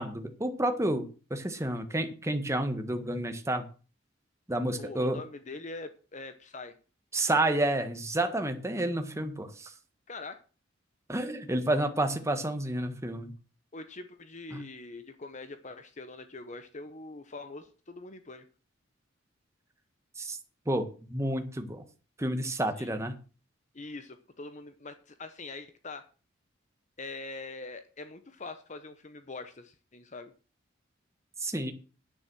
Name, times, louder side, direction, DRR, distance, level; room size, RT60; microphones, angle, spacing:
voice 1, 0.0-3.6 4.5-5.2 7.1-9.7 11.1-13.3 14.5-14.6 20.2-20.4 20.7-21.8 22.2-23.1 31.4-31.7, right 1 dB, 15° right, 7 dB, 1.6 m, -30 dB
voice 2, 4.8-6.7 10.1-10.4 13.7-18.5 22.8-22.9 23.7-26.0 27.0-30.3, left 3 dB, 40° left, 10 dB, 1.0 m, -43 dB
10.0 x 9.5 x 6.3 m, 0.36 s
head